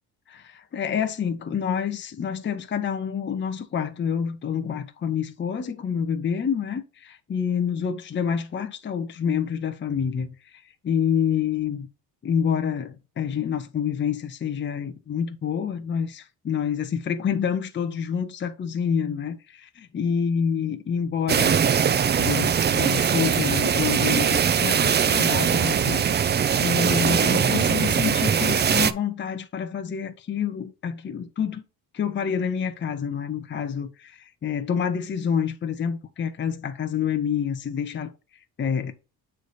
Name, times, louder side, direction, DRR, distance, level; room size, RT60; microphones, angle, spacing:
voice 1, 0.3-11.9 12.2-21.6 22.2-31.6 31.9-38.9, left 7 dB, 30° left, 0.6 m, -28 dB
sound 1, 21.3-28.9, right 7 dB, 30° right, 0.3 m, -21 dB
8.0 x 3.3 x 4.0 m
cardioid pair, 130°, 39 cm